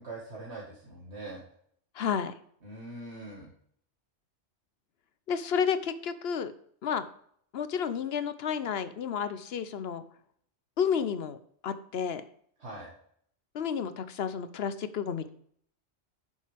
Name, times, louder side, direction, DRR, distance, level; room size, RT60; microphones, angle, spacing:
voice 1, 0.0-1.4 2.6-3.5 12.6-12.9, right 2 dB, 70° right, -4 dB, 2.2 m, -42 dB
voice 2, 1.9-2.3 5.3-6.5 6.8-7.1 7.5-10.0 10.8-11.4 11.6-12.2 13.5-15.3, left 7 dB, 65° left, 12 dB, 0.9 m, -31 dB
9.2 x 7.2 x 3.4 m, 0.64 s
omnidirectional pair, 1.2 m